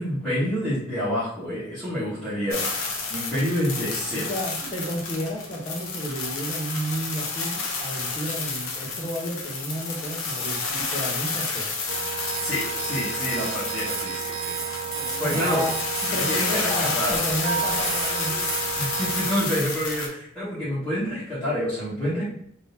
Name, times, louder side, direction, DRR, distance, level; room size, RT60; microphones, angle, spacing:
voice 1, 0.0-2.6 3.1-4.3 12.4-14.5 15.2-15.6 16.1-17.2 18.8-22.2, equal, 5° left, -14 dB, 1.1 m, -28 dB
sound 1, 2.5-20.1, left 4 dB, 70° left, 0.7 m, -30 dB
voice 2, 4.1-11.7 14.6-15.8 16.1-18.5, equal, 25° left, -1 dB, 0.7 m, -32 dB
sound 2, 11.9-19.4, right 9 dB, 65° right, 0.4 m, -32 dB
3.4 x 2.6 x 2.7 m, 0.65 s
head